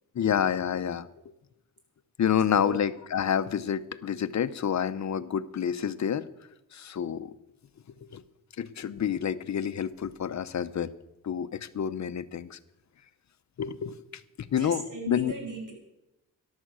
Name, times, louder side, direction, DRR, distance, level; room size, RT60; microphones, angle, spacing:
voice 1, 0.1-1.1 2.2-6.2 6.7-7.3 8.0-8.2 8.6-10.9 11.2-12.6 13.6-13.9 14.4-15.3, left 8 dB, 50° left, 12 dB, 0.8 m, -28 dB
voice 2, 14.5-15.7, right 4 dB, 60° right, 2 dB, 5.1 m, -37 dB
14.0 x 11.5 x 6.3 m, 0.88 s
cardioid pair, 105°, 36 cm